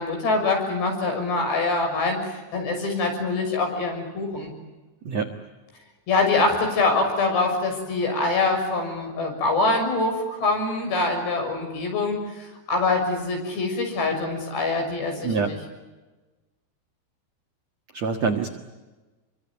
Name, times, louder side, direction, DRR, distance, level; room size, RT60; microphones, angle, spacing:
voice 1, 0.0-4.5 6.1-15.6, left 3 dB, 55° left, 3 dB, 8.7 m, -24 dB
voice 2, 17.9-18.5, right 5 dB, 70° right, 4 dB, 1.6 m, -25 dB
28.0 x 24.0 x 8.8 m, 1.2 s
omnidirectional pair, 5.7 m